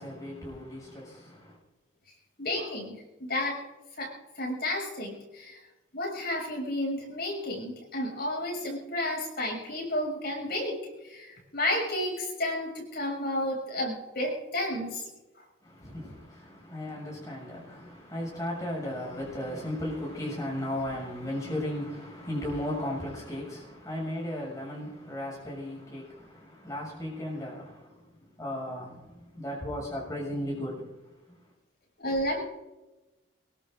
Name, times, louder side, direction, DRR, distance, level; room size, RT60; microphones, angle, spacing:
voice 1, 0.0-1.6 15.6-31.0 31.3-31.4, left 1 dB, 15° left, 6.6 m, -36 dB
voice 2, 2.4-3.6 4.0-5.6 5.9-15.0 15.4-15.5 32.0-32.4, left 1 dB, 50° left, 6.5 m, -32 dB
23.5 x 22.5 x 2.6 m
head